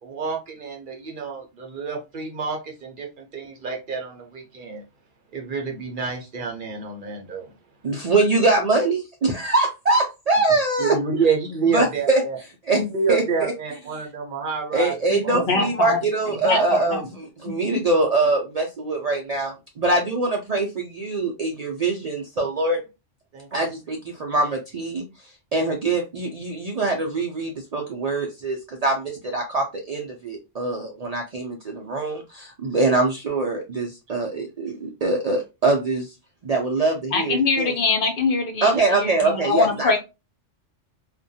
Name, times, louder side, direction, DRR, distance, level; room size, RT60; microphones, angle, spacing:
voice 1, 0.0-4.8 5.3-7.5 10.8-12.4 12.7-14.9 15.2-15.4 23.3-23.5, right 5 dB, 55° right, 0.7 m, -28 dB
voice 2, 7.8-11.0 11.7-12.2 12.6-12.8 13.1-13.5 13.9-14.1 14.7-22.8 23.5-36.1 36.4-37.7 38.6-40.0, right 3 dB, 75° right, 0.3 m, -23 dB
voice 3, 15.1-16.0 16.4-17.0 37.1-40.0, left 4 dB, 55° left, 0.8 m, -23 dB
2.4 x 2.2 x 2.6 m
omnidirectional pair, 1.2 m